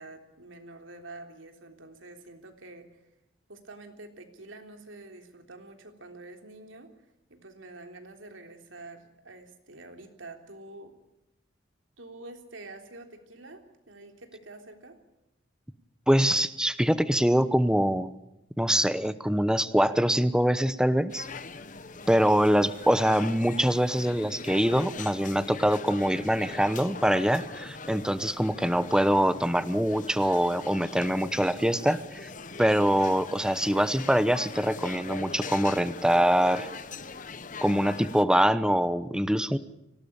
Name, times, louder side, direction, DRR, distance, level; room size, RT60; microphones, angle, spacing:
voice 1, 0.0-3.0 3.5-6.9 7.3-10.9 12.0-15.0, right 2 dB, 90° right, 5 dB, 3.6 m, -47 dB
voice 2, 16.1-18.1 18.6-21.3 22.1-32.3 32.6-36.7 37.6-39.6, equal, 5° right, 13 dB, 0.9 m, -24 dB
sound 1, 21.1-38.2, left 4 dB, 40° left, 1.0 m, -41 dB
24.5 x 18.0 x 8.8 m, 0.91 s
head